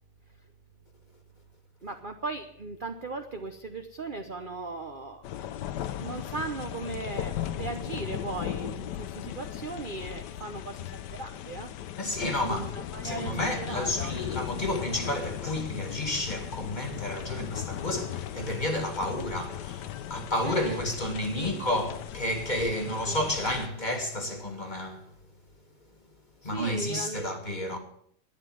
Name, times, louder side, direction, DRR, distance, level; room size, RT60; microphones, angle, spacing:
voice 1, 1.8-5.3 6.0-11.7 12.5-14.2 20.4-20.9 21.3-21.5 22.8-23.2 26.4-27.3, right 3 dB, 45° right, 0.7 m, -38 dB
sound 1, 5.2-23.7, left 12 dB, 65° left, 1.2 m, -37 dB
voice 2, 12.0-12.7 13.0-25.1 26.4-27.8, left 1 dB, 25° left, 1.9 m, -31 dB
12.0 x 9.6 x 7.9 m
omnidirectional pair, 2.2 m